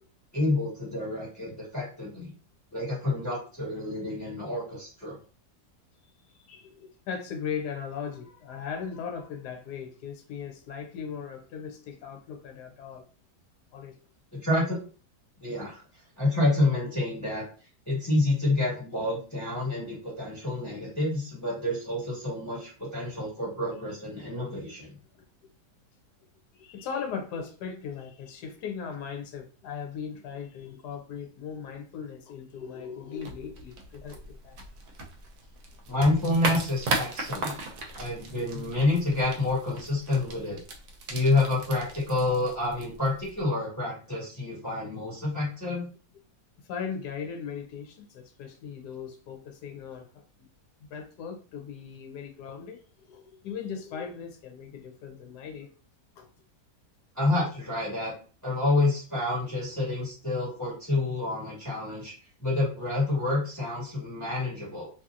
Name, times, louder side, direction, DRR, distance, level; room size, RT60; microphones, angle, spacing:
voice 1, 0.3-2.3 2.7-5.2 14.3-14.8 15.4-15.8 16.2-17.4 17.9-24.9 35.9-37.5 37.9-40.6 41.1-45.9 57.1-58.1 58.4-62.1 62.4-64.9, left 2 dB, 10° left, 1.3 m, -28 dB
voice 2, 6.2-13.1 13.7-13.9 25.1-25.5 26.5-34.6 46.7-50.5 50.8-55.7 56.2-56.3, left 6 dB, 80° left, 1.2 m, -38 dB
sound 1, 33.2-43.4, right 2 dB, 65° right, 0.9 m, -37 dB
2.8 x 2.7 x 2.4 m
omnidirectional pair, 1.7 m